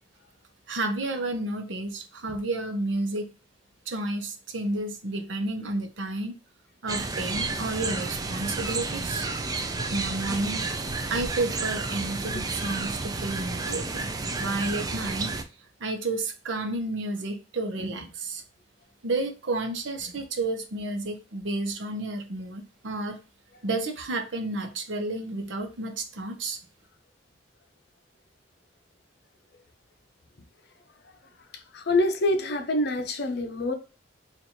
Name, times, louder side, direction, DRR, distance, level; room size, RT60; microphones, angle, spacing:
voice 1, 0.7-3.3 3.9-6.3 6.8-9.3 9.9-10.6 11.1-15.3 15.8-18.4 19.0-23.2 23.6-26.6, right 2 dB, 85° right, 0.7 m, -31 dB
sound 1, 6.9-15.4, right 3 dB, 20° right, 0.4 m, -31 dB
voice 2, 31.7-33.7, left 2 dB, 60° left, 0.7 m, -25 dB
2.9 x 2.5 x 4.2 m
head